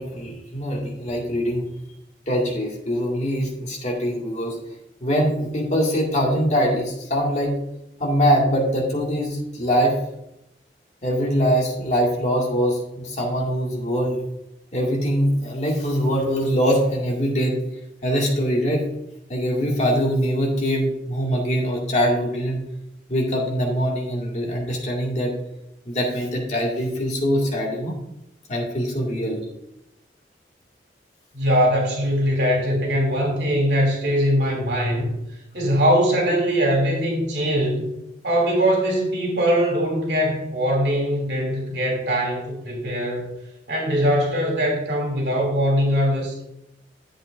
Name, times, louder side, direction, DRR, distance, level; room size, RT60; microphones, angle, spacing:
voice 1, 0.0-1.7 2.3-4.6 5.0-7.5 8.0-10.0 11.0-14.2 14.7-17.6 18.0-18.8 19.3-22.6 23.1-25.3 25.9-27.9 28.5-29.4, equal, 40° left, -2 dB, 2.1 m, -23 dB
voice 2, 31.3-35.1 35.5-37.9 38.2-43.3 43.7-46.4, equal, 80° right, 0 dB, 2.7 m, -21 dB
11.5 x 7.7 x 2.6 m, 0.85 s
head